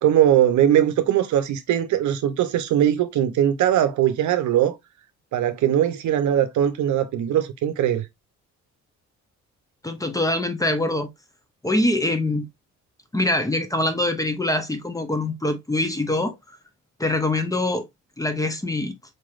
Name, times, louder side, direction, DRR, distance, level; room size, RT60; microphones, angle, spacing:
voice 1, 0.0-4.8 5.3-8.1, right 11 dB, 70° right, 0.7 m, -20 dB
voice 2, 9.8-11.1 11.6-12.5 13.1-16.4 17.0-17.9 18.2-18.9, left 1 dB, 10° left, 0.7 m, -24 dB
4.4 x 3.1 x 2.4 m
cardioid pair, 90°, 30 cm